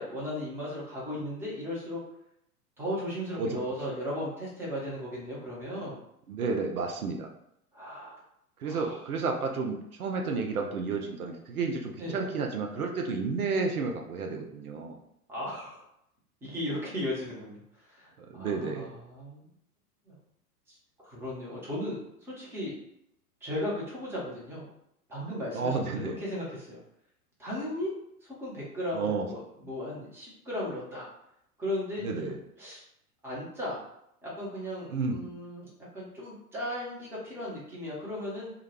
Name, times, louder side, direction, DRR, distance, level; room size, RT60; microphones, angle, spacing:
voice 1, 0.0-2.0 2.8-6.0 7.7-8.2 8.6-9.0 12.0-12.2 15.3-15.8 16.4-19.5 20.1-20.2 20.7-20.8 21.0-22.7 23.4-24.7 25.1-26.8 27.4-27.9 28.2-31.1 31.6-32.8 33.2-33.8 34.2-38.5, left 1 dB, 5° right, -6 dB, 0.7 m, -36 dB
voice 2, 6.3-7.3 8.6-15.0 18.3-18.9 25.5-26.2 28.9-29.3 32.0-32.4 34.9-35.2, right 4 dB, 70° right, 3 dB, 0.6 m, -31 dB
2.3 x 2.1 x 3.2 m, 0.78 s
figure-of-eight pair, 95°, 46 cm